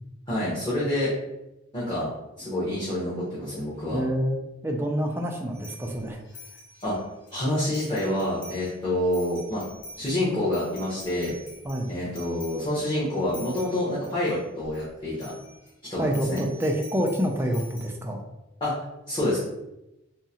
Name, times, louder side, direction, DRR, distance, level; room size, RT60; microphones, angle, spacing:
voice 1, 0.3-1.1 1.7-2.1 2.4-4.0 6.8-7.0 7.3-9.6 10.0-11.3 11.9-15.3 15.9-16.4 18.6-18.8 19.1-19.4, left 1 dB, 25° left, -9 dB, 0.8 m, -27 dB
voice 2, 3.9-4.4 4.6-6.2 11.6-11.9 16.0-18.2, equal, 10° right, 2 dB, 0.3 m, -27 dB
sound 1, 5.5-7.3 7.7-8.8 9.0-14.8 15.2-15.7 16.1-17.9, left 2 dB, 60° left, 1.0 m, -46 dB
3.6 x 2.0 x 2.8 m, 0.93 s
head